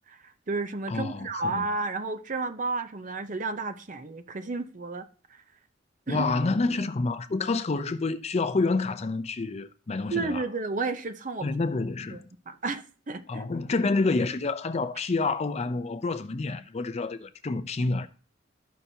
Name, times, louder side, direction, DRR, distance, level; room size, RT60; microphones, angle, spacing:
voice 1, 0.1-5.0 6.1-6.2 10.1-11.5 12.1-13.5, right 3 dB, 45° right, 0.6 m, -32 dB
voice 2, 0.9-1.7 6.1-10.4 11.4-12.2 13.3-18.1, left 3 dB, 35° left, 0.5 m, -28 dB
13.5 x 5.6 x 2.7 m
head